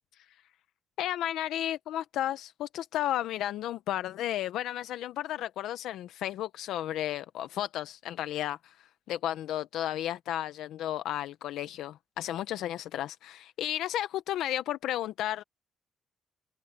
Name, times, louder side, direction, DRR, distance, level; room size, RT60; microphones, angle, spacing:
voice 1, 1.0-15.4, left 12 dB, 85° left, 0.7 m, -33 dB
open air
cardioid pair, 90°, 0 cm